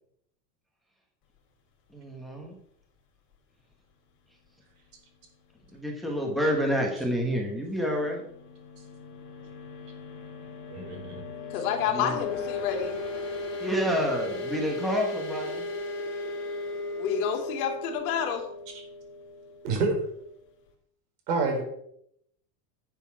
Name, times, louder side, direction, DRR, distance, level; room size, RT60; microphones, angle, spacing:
voice 1, 1.9-2.5 5.7-8.2 11.9-12.2 13.6-15.7, equal, ahead, 0 dB, 1.4 m, -28 dB
sound 1, 7.8-20.3, left 3 dB, 25° left, 2.9 m, -37 dB
voice 2, 10.7-11.2 19.6-20.0 21.3-21.6, right 3 dB, 75° right, 3 dB, 4.5 m, -27 dB
voice 3, 11.5-13.0 17.0-18.5, left 8 dB, 60° left, 4 dB, 2.6 m, -29 dB
11.0 x 7.3 x 6.0 m, 0.72 s
supercardioid pair, 170°, 47 cm